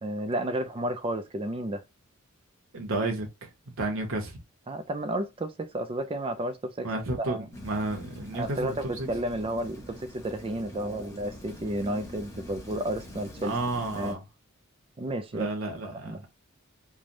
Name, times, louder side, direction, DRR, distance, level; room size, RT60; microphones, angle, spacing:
voice 1, 0.0-1.8 4.7-6.9 7.2-7.5 8.3-13.6 14.0-14.2 15.0-15.5 15.9-16.3, right 1 dB, 25° right, 0.4 m, -32 dB
voice 2, 2.7-3.5 3.8-4.4 6.8-9.1 13.4-14.2 15.3-16.3, right 2 dB, 65° right, 1.0 m, -32 dB
Rain, 7.5-14.1, left 1 dB, 15° left, 0.9 m, -45 dB
3.3 x 2.2 x 2.6 m
head